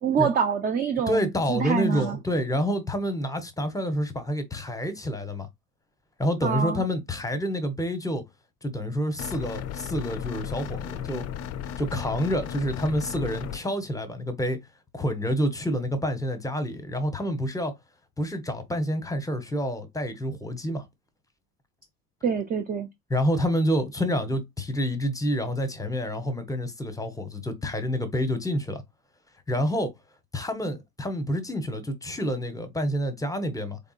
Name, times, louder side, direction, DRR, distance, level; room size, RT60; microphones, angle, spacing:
voice 1, 0.0-2.2 6.4-6.8 22.2-22.9, right 6 dB, 20° right, 0.5 m, -26 dB
voice 2, 1.1-5.5 6.2-8.2 8.6-11.3 11.8-14.6 14.9-17.7 18.2-20.9 23.1-28.8 29.5-29.9 30.3-33.8, equal, 5° left, 0.9 m, -28 dB
sound 1, 9.2-13.6, left 9 dB, 35° left, 0.5 m, -35 dB
3.6 x 3.4 x 2.4 m
hypercardioid pair, 80°, 48 cm